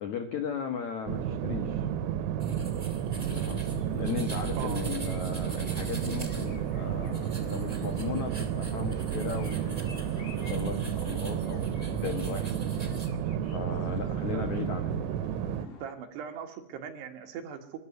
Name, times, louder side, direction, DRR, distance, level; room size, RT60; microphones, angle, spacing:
voice 1, 0.0-1.8 3.4-3.6 3.9-10.0 10.4-12.6 13.5-14.8, left 7 dB, 75° left, 7 dB, 1.7 m, -37 dB
sound 1, 1.1-15.7, right 9 dB, 85° right, 3.5 m, -31 dB
sound 2, 2.4-13.1, right 2 dB, 20° right, 1.0 m, -46 dB
sound 3, 3.2-15.9, left 4 dB, 45° left, 2.9 m, -53 dB
voice 2, 4.6-4.9 13.7-13.8 14.3-14.5 15.8-17.8, right 7 dB, 65° right, 5 dB, 3.6 m, -39 dB
22.0 x 13.5 x 9.4 m, 0.75 s
omnidirectional pair, 5.5 m